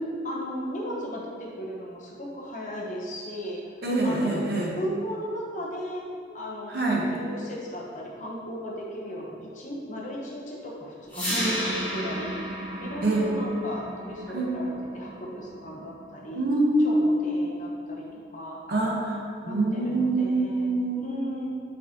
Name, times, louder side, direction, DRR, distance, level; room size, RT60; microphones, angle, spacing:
voice 1, 0.2-3.6 4.0-4.5 4.8-6.0 6.3-12.5 12.8-16.4 16.8-18.1 18.3-18.6 19.4-20.7 21.0-21.5, equal, 45° left, -3 dB, 0.9 m, -36 dB
voice 2, 3.8-4.8 6.7-7.1 11.3-11.7 13.0-13.3 14.3-14.5 16.3-17.5 18.7-21.2, right 2 dB, 60° right, -3 dB, 1.1 m, -25 dB
sound 1, 11.1-17.1, equal, 10° left, 1.4 m, -34 dB
7.1 x 4.8 x 2.9 m, 2.3 s
head